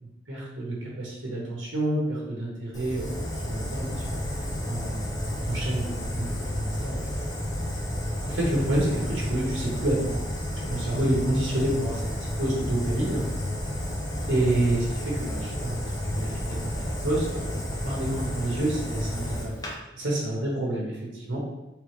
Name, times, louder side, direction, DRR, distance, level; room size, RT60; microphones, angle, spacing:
voice 1, 0.0-4.0 4.7-5.2 5.5-7.1 8.2-10.2 10.6-13.2 14.3-15.8 16.2-19.6 20.0-21.4, right 1 dB, 80° right, -4 dB, 1.0 m, -29 dB
Fire, 2.7-19.7, equal, 20° left, 0.5 m, -31 dB
3.3 x 3.3 x 3.1 m, 0.98 s
head